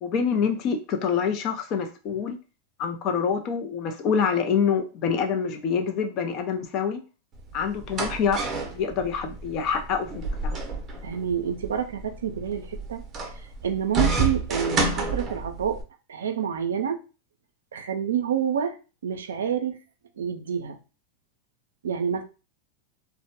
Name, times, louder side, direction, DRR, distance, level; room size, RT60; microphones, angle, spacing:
voice 1, 0.0-2.4 2.8-7.0 7.5-10.6, left 6 dB, 45° left, 6 dB, 0.5 m, -26 dB
sound 1, 7.3-15.8, right 3 dB, 30° right, 0.6 m, -30 dB
voice 2, 11.0-13.0 13.6-15.8 16.1-17.0 17.7-18.8 19.0-19.8 20.2-20.8 21.8-22.2, right 8 dB, 85° right, 7 dB, 0.4 m, -28 dB
2.1 x 2.1 x 2.8 m, 0.33 s
hypercardioid pair, 105°, 0 cm